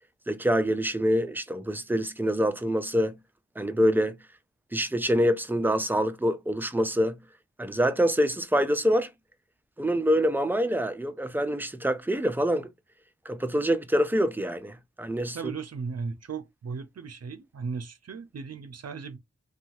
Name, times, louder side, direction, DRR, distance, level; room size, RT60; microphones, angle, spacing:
voice 1, 0.3-3.2 3.6-4.2 4.7-7.2 7.6-9.1 9.8-12.7 13.3-15.4, equal, 5° right, 0.3 m, -25 dB
voice 2, 15.3-19.2, right 5 dB, 60° right, 0.5 m, -36 dB
2.7 x 2.3 x 2.9 m
wide cardioid pair, 85°, 29 cm